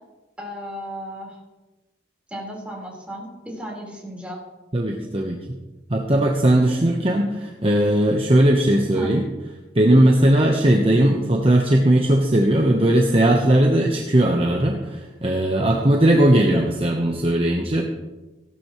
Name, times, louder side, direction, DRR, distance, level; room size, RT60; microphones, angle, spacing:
voice 1, 0.4-1.4 2.3-4.4 8.9-9.1, equal, 5° right, -4 dB, 4.4 m, -34 dB
voice 2, 4.7-5.6 5.9-9.2 9.7-17.8, right 1 dB, 35° right, 1 dB, 1.1 m, -18 dB
17.0 x 12.5 x 3.2 m, 1.1 s
head